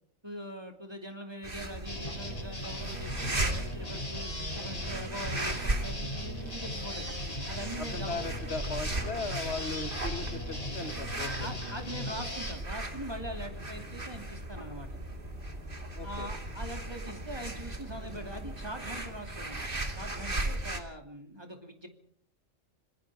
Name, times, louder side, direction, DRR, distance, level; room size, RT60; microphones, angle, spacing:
voice 1, 0.2-7.1 7.5-8.3 11.4-14.9 16.0-21.9, equal, 20° right, 4 dB, 2.7 m, -42 dB
sound 1, 1.4-20.8, right 1 dB, 45° right, 2.7 m, -37 dB
sound 2, 1.8-12.5, left 1 dB, 30° left, 7.0 m, -39 dB
voice 2, 7.8-11.5 16.0-16.3, left 3 dB, 60° left, 9 dB, 1.5 m, -38 dB
27.0 x 21.5 x 4.9 m, 0.62 s
omnidirectional pair, 1.3 m